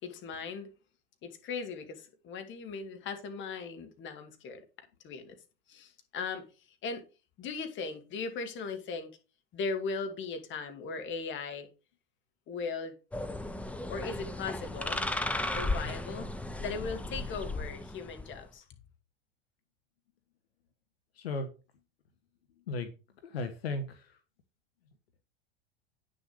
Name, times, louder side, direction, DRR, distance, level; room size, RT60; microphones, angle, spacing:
voice 1, 0.0-0.7 1.2-4.6 5.0-5.4 5.7-6.5 6.8-7.0 7.4-9.1 9.5-11.7 12.5-13.0 13.9-15.0 15.5-16.3 16.6-18.7, left 4 dB, 40° left, 2.3 m, -38 dB
sound 1, 13.1-18.5, left 2 dB, 5° left, 1.0 m, -35 dB
voice 2, 21.1-21.5 22.7-22.9 23.2-24.2, left 3 dB, 75° left, 1.5 m, -35 dB
9.5 x 6.6 x 5.0 m
hypercardioid pair, 90°, 31 cm